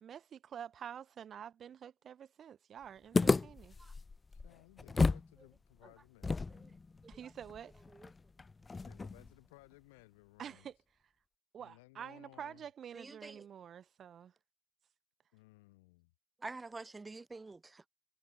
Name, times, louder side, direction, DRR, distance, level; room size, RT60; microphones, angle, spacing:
voice 1, 0.0-3.8 7.1-7.7 10.4-10.8 11.5-14.3, right 8 dB, 45° right, 2.5 m, -48 dB
sound 1, 3.1-5.3 5.6-5.7 6.2-9.3, left 4 dB, 25° left, 1.0 m, -33 dB
voice 2, 4.4-6.8 8.8-10.7 11.6-12.7 15.3-16.1, left 23 dB, 80° left, 5.5 m, -61 dB
voice 3, 12.9-13.4 16.4-17.9, right 3 dB, 20° right, 0.8 m, -47 dB
hypercardioid pair, 75°, 0 cm